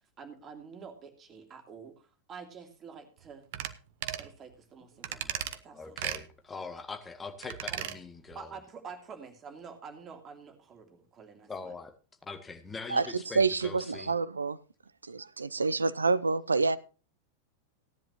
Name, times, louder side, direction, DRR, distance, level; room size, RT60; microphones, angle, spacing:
voice 1, 0.2-3.5 4.2-6.0 7.7-7.8 8.3-11.7, right 5 dB, 25° right, 5 dB, 2.8 m, -48 dB
sound 1, 3.5-3.7 4.0-4.3 5.0-5.6 6.0-6.2 7.4-8.0 8.3-8.4, right 11 dB, 50° right, 0.9 m, -35 dB
voice 2, 5.1-5.4 5.7-8.6 11.5-11.9 12.2-14.1, left 4 dB, 15° left, 7 dB, 1.8 m, -42 dB
voice 3, 12.9-14.6 15.1-16.8, right 4 dB, 75° right, 18 dB, 0.6 m, -28 dB
17.0 x 10.5 x 2.8 m, 0.34 s
figure-of-eight pair, 90°, 0 cm